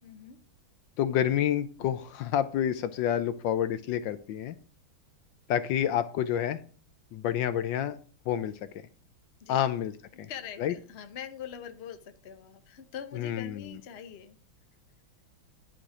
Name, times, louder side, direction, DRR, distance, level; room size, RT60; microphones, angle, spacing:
voice 1, 0.0-0.4 9.4-9.6 10.3-14.4, left 8 dB, 50° left, 8 dB, 0.7 m, -43 dB
voice 2, 1.0-4.6 5.5-6.6 7.1-8.0 8.3-8.5 9.5-9.9 10.2-10.3 10.6-10.7 13.1-13.7, left 10 dB, 75° left, 13 dB, 1.2 m, -28 dB
10.5 x 5.1 x 4.8 m, 0.42 s
omnidirectional pair, 2.3 m